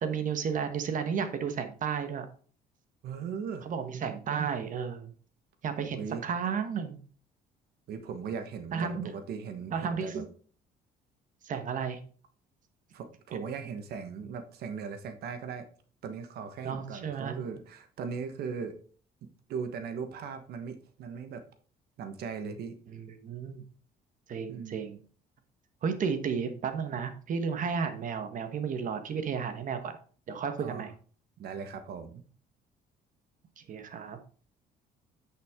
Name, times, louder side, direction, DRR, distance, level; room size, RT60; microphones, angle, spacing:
voice 1, 0.0-2.3 3.6-5.1 5.6-7.0 8.7-9.1 9.7-10.2 11.4-12.0 16.6-17.4 22.9-23.6 24.3-25.0 25.8-30.0 30.3-30.9 33.7-34.2, right 6 dB, 50° right, 8 dB, 1.3 m, -33 dB
voice 2, 3.0-3.7 5.9-6.2 7.9-10.2 12.9-15.7 16.0-18.8 19.2-21.4 22.0-22.8 24.5-24.8 30.6-30.9 31.4-32.2, right 6 dB, 70° right, 8 dB, 1.3 m, -38 dB
9.9 x 5.9 x 3.7 m, 0.43 s
cardioid pair, 110°, 17 cm